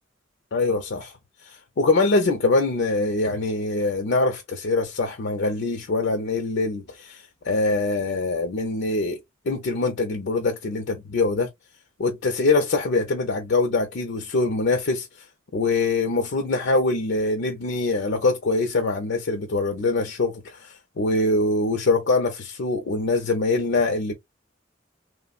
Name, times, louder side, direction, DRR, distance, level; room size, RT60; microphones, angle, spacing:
voice 1, 0.5-1.1 1.4-9.2 9.5-11.5 12.0-15.3 15.5-24.1, left 3 dB, 60° left, 0.5 m, -23 dB
3.2 x 2.1 x 2.4 m
head